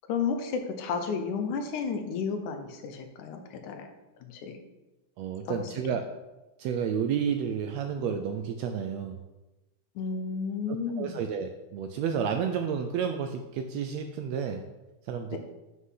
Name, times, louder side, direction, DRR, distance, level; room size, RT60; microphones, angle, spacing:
voice 1, 0.1-3.9 4.3-4.6 5.5-6.0 10.0-11.2 15.3-15.4, left 5 dB, 80° left, 6 dB, 2.3 m, -32 dB
voice 2, 5.2-6.1 6.6-9.2 10.7-14.7 15.0-15.4, right 7 dB, 80° right, 6 dB, 1.6 m, -31 dB
7.6 x 6.0 x 5.7 m, 1.0 s
omnidirectional pair, 3.5 m